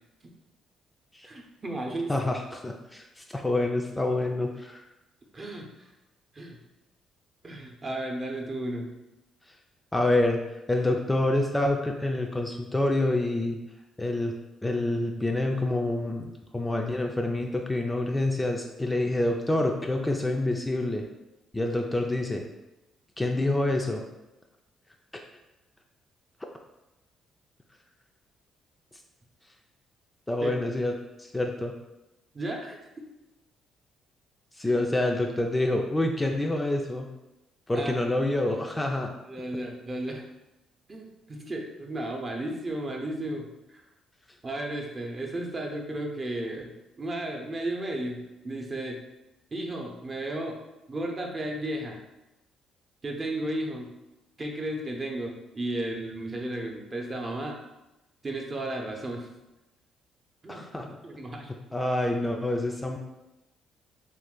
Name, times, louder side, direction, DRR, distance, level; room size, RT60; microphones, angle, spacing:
voice 1, 1.2-2.1 5.3-5.9 6.3-6.6 7.4-8.9 30.4-30.5 32.3-32.8 34.6-34.8 37.7-38.0 38.7-39.0 39.3-40.2 40.9-43.8 44.4-49.0 49.5-50.6 50.9-52.0 53.0-53.9 54.4-57.6 58.2-59.3 60.4-61.5, right 1 dB, 35° right, 1 dB, 0.7 m, -34 dB
voice 2, 2.1-4.8 9.9-10.4 10.7-13.6 14.0-14.3 14.6-21.0 21.5-22.5 23.2-24.0 30.3-30.9 31.3-31.7 34.6-37.1 37.7-39.1 60.5-60.9 61.7-63.0, left 1 dB, 15° left, 2 dB, 0.3 m, -27 dB
2.5 x 2.4 x 3.7 m, 0.97 s
supercardioid pair, 65°, 0 cm